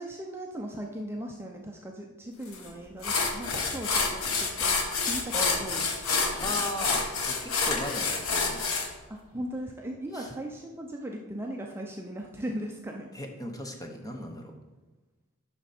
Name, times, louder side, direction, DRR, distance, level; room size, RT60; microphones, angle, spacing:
voice 1, 0.0-5.8 6.1-6.6 9.1-13.1, right 1 dB, 10° right, 1 dB, 0.5 m, -38 dB
sound 1, 2.5-2.6 3.0-8.9, left 4 dB, 70° left, 1.2 m, -28 dB
voice 2, 6.4-8.6 10.1-10.3 13.1-14.5, left 1 dB, 15° left, 3 dB, 1.0 m, -37 dB
10.0 x 6.1 x 4.2 m, 1.2 s
head